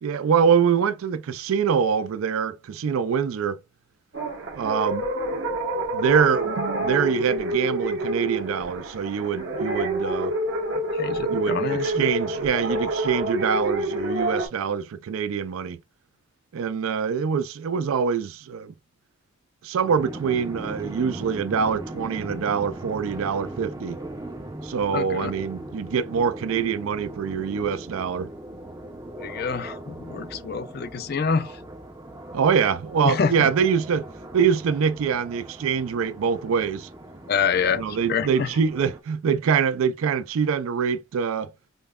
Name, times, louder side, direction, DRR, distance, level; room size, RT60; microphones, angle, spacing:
voice 1, 0.0-3.6 4.5-5.1 5.9-10.3 11.3-15.8 16.5-18.7 19.6-24.0 24.6-28.3 32.3-34.1 34.3-36.9 37.7-41.5, right 6 dB, 80° right, 0.4 m, -24 dB
sound 1, 4.1-14.5, right 1 dB, 60° right, 1.0 m, -27 dB
voice 2, 10.9-12.1 24.9-25.3 29.2-31.5 33.0-33.5 37.3-37.8 38.1-38.5, left 6 dB, 50° left, 0.4 m, -26 dB
sound 2, 19.8-39.0, right 1 dB, 15° right, 0.5 m, -39 dB
5.2 x 2.1 x 2.3 m
head